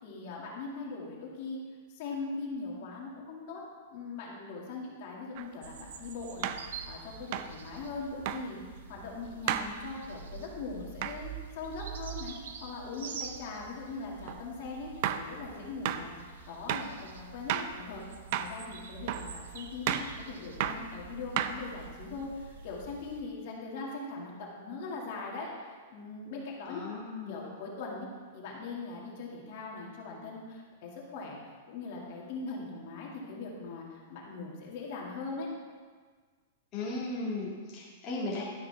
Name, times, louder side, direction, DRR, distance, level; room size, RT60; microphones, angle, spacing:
voice 1, 0.0-1.6 1.9-3.6 3.9-18.0 18.3-26.8 27.3-31.4 31.7-35.5, left 3 dB, 50° left, -2 dB, 2.2 m, -41 dB
sound 1, 5.4-5.5 6.4-6.7 7.3-7.6 8.3-8.5 9.5-9.7 11.0-11.2 14.3-14.4 15.0-15.3 15.9-16.1 16.7-16.9 17.5-17.8 18.3-18.6 19.1-19.3 19.9-20.1 20.6-20.9 21.4-21.9, right 10 dB, 45° right, 0.5 m, -32 dB
sound 2, 5.6-23.2, right 6 dB, 85° right, 1.0 m, -46 dB
voice 2, 26.7-27.5 36.7-38.4, left 2 dB, 30° left, -6 dB, 1.9 m, -36 dB
12.0 x 9.5 x 3.4 m, 1.5 s
supercardioid pair, 160°, 0 cm